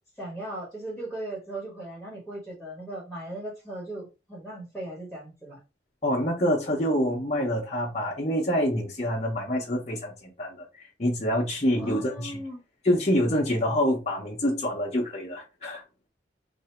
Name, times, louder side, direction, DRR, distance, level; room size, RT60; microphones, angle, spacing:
voice 1, 0.2-5.6 11.8-12.6, right 1 dB, ahead, 1.1 m, -37 dB
voice 2, 6.0-12.4 12.8-15.8, equal, 35° left, 0.7 m, -26 dB
2.8 x 2.6 x 4.3 m
head